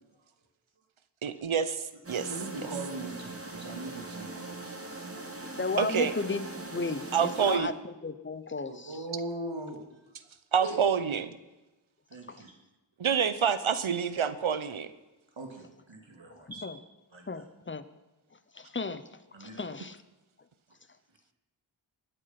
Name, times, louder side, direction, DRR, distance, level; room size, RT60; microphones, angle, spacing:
voice 1, 1.2-2.3 5.2-5.3 5.8-6.1 7.1-7.7 10.5-11.3 13.0-14.9, right 7 dB, 90° right, 13 dB, 0.9 m, -27 dB
sound 1, 2.0-7.6, right 2 dB, 30° right, 1.9 m, -41 dB
voice 2, 2.1-5.0 8.7-9.9 10.6-10.8 12.1-12.5 15.4-16.7 17.1-17.4 19.3-19.7, right 2 dB, 70° right, 3 dB, 2.5 m, -40 dB
voice 3, 5.5-9.0 12.3-12.4 16.3-16.8 17.3-17.9 18.5-19.1 19.4-20.0, left 4 dB, 25° left, 13 dB, 0.9 m, -35 dB
20.0 x 8.1 x 5.9 m, 1.1 s
wide cardioid pair, 50°, 47 cm